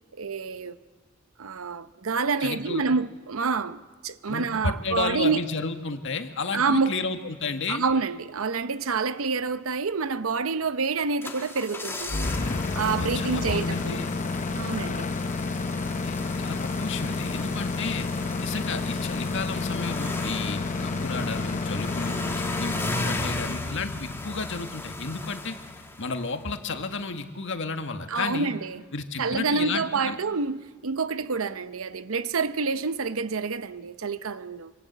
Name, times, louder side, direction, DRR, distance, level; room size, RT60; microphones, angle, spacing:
voice 1, 0.2-0.8 1.4-5.4 6.5-6.9 7.7-12.3 12.7-14.1 14.5-15.1 28.1-28.8 29.2-34.7, right 4 dB, 75° right, 0.8 m, -28 dB
voice 2, 2.4-2.8 4.3-7.8 13.0-14.1 16.0-18.1 18.4-22.2 22.6-25.6 26.0-28.5 28.9-30.2, left 4 dB, 60° left, 1.8 m, -32 dB
sound 1, 10.9-26.4 26.7-26.8, left 2 dB, 10° left, 2.1 m, -37 dB
sound 2, 12.1-26.0, left 3 dB, 35° left, 0.7 m, -30 dB
25.5 x 25.5 x 8.2 m
head